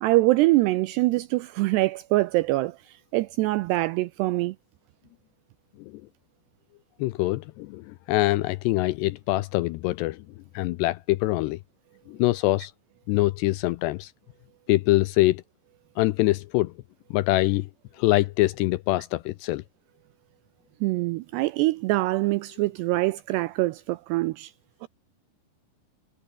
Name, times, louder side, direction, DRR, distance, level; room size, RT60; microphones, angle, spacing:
voice 1, 0.0-4.6 20.8-24.5 24.8-24.9, right 19 dB, 85° right, 2.4 m, -24 dB
voice 2, 7.0-10.2 10.5-11.6 12.1-12.7 13.1-14.1 14.7-15.4 16.0-16.7 17.1-17.7 18.0-19.6, left 19 dB, 85° left, 2.5 m, -24 dB
omnidirectional pair, 5.4 m